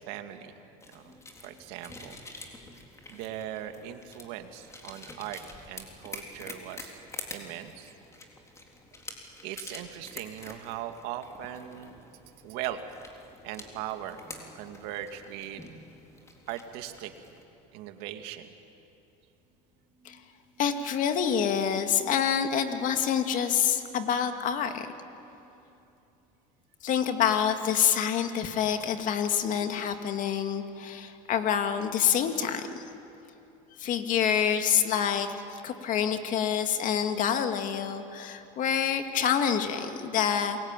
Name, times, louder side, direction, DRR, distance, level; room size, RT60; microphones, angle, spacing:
voice 1, 0.1-0.5 0.9-2.2 3.1-5.4 5.7-7.0 7.3-7.9 9.4-12.0 12.4-12.8 13.4-14.2 14.5-15.7 16.5-17.1 17.7-18.5, right 12 dB, 75° right, 7 dB, 2.2 m, -39 dB
sound 1, 0.8-17.4, left 2 dB, 15° left, 3.7 m, -47 dB
sound 2, 19.5-19.6 19.8-25.6, right 1 dB, 20° right, 7.7 m, -52 dB
voice 2, 20.6-24.9 26.8-32.8 33.8-35.3 35.6-40.6, left 8 dB, 50° left, 7 dB, 2.2 m, -27 dB
28.5 x 22.0 x 9.0 m, 2.9 s
supercardioid pair, 115°, 17 cm